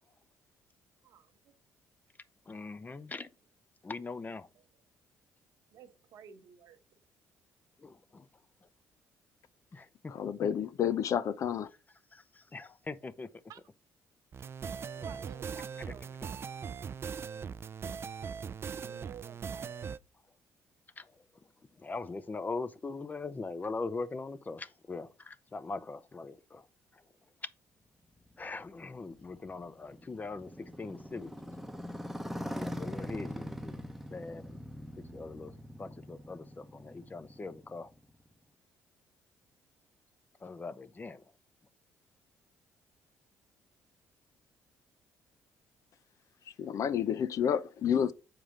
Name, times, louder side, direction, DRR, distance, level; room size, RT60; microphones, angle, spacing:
voice 1, 1.0-1.5 4.5-4.6 5.7-6.8 13.5-13.6 14.4-14.5 15.0-16.3 18.6-19.9, right 9 dB, 65° right, 1.0 m, -53 dB
voice 2, 2.5-3.3 3.8-4.5 7.8-8.3 9.7-10.1 12.1-13.3 15.0-15.2 15.8-15.9 17.8-17.9 21.0-21.1 21.8-26.7 26.9-27.0 28.4-31.3 32.2-34.6 35.1-35.5 35.8-37.9 40.4-41.2, left 3 dB, 25° left, 0.7 m, -41 dB
voice 3, 10.1-11.7 46.6-48.1, left 8 dB, 60° left, 0.6 m, -30 dB
sound 1, 14.3-20.0, right 6 dB, 40° right, 0.4 m, -40 dB
Motorcycle, 28.3-38.2, equal, 5° right, 0.9 m, -43 dB
7.3 x 4.9 x 3.8 m
supercardioid pair, 70°, 6 cm